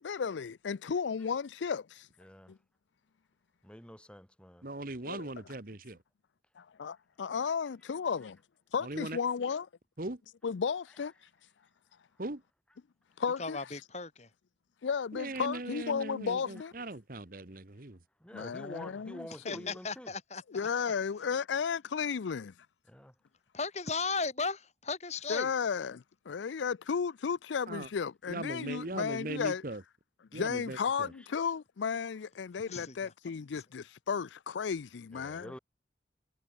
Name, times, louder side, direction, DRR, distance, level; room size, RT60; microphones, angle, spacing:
voice 1, 0.0-2.1 2.5-2.6 5.1-5.3 6.6-8.4 8.7-9.7 10.4-11.1 13.2-13.6 14.8-16.7 18.3-19.7 20.5-22.5 25.3-29.6 30.3-35.5, left 6 dB, 85° left, 0.5 m, -34 dB
voice 2, 2.2-2.5 3.6-4.7 18.2-20.1 22.9-23.1 35.1-35.6, equal, 5° left, 4.0 m, -47 dB
voice 3, 4.6-6.0 8.8-9.2 10.0-10.2 12.2-12.4 15.1-18.0 27.7-27.9 28.3-29.8 30.3-31.1, right 2 dB, 50° right, 1.5 m, -39 dB
voice 4, 13.4-14.3 19.4-20.7 23.5-25.5 32.7-33.1, left 4 dB, 40° left, 2.7 m, -36 dB
head